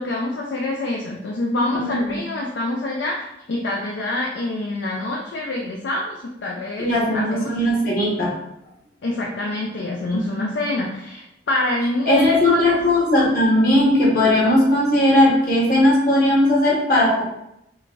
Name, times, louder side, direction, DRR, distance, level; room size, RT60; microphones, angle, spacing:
voice 1, 0.0-7.5 9.0-12.8, left 1 dB, 65° left, -2 dB, 0.4 m, -26 dB
voice 2, 1.7-2.2 6.8-8.3 10.1-10.4 12.1-17.2, left 1 dB, 50° left, -5 dB, 1.2 m, -18 dB
4.8 x 2.3 x 2.5 m, 0.81 s
head